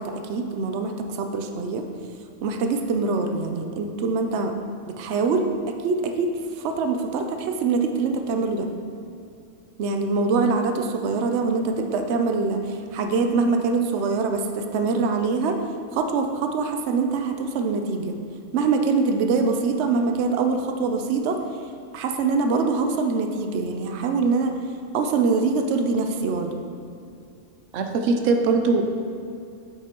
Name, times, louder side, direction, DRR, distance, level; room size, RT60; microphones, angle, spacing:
voice 1, 0.0-1.9 2.4-4.5 4.9-8.7 9.8-15.6 15.9-18.1 18.5-21.4 21.9-24.6 24.9-26.6, right 4 dB, 70° right, 5 dB, 0.9 m, -24 dB
voice 2, 27.7-28.8, right 4 dB, 90° right, 4 dB, 1.0 m, -21 dB
8.4 x 8.1 x 3.0 m, 2.6 s
omnidirectional pair, 1.3 m